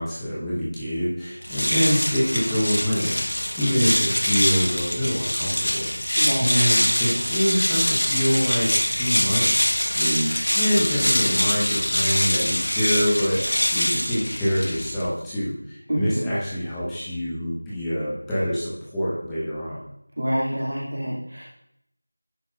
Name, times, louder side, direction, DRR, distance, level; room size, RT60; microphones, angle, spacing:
voice 1, 0.0-19.8, equal, 5° left, -11 dB, 1.0 m, -26 dB
sound 1, 1.4-15.1, left 1 dB, 60° left, 1.2 m, -24 dB
voice 2, 6.2-6.6 15.9-16.2 20.2-21.4, equal, 50° right, -6 dB, 2.4 m, -27 dB
10.5 x 6.1 x 2.5 m, 0.78 s
figure-of-eight pair, 175°, 0 cm